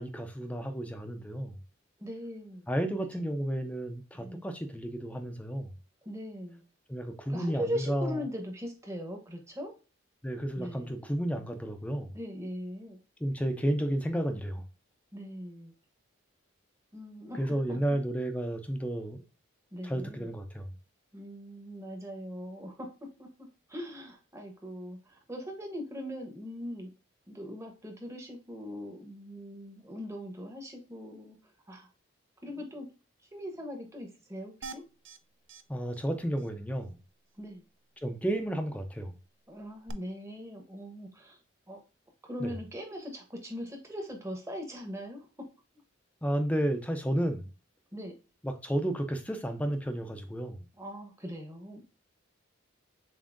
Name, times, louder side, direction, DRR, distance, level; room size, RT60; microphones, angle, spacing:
voice 1, 0.0-1.5 2.7-5.7 6.9-8.2 10.2-12.1 13.2-14.6 17.4-19.2 19.8-20.7 35.7-37.0 38.0-39.1 42.4-42.5 46.2-47.5 48.4-50.7, right 1 dB, 5° left, 0.6 m, -32 dB
voice 2, 2.0-2.7 3.0-3.1 4.1-4.4 6.0-6.6 7.3-9.7 10.6-10.9 12.1-13.0 15.1-15.7 16.9-18.0 19.7-20.3 21.1-26.9 27.3-31.4 31.7-31.9 32.4-32.9 33.3-34.8 37.4-37.6 39.5-41.4 41.7-41.8 42.2-45.3 47.9-48.1 50.8-51.8, equal, 15° right, 1.0 m, -40 dB
sound 1, 34.6-35.2 35.5-35.6 35.9-36.1 36.4-36.5 39.9-40.0, right 4 dB, 60° right, 0.4 m, -44 dB
7.1 x 2.7 x 2.5 m
head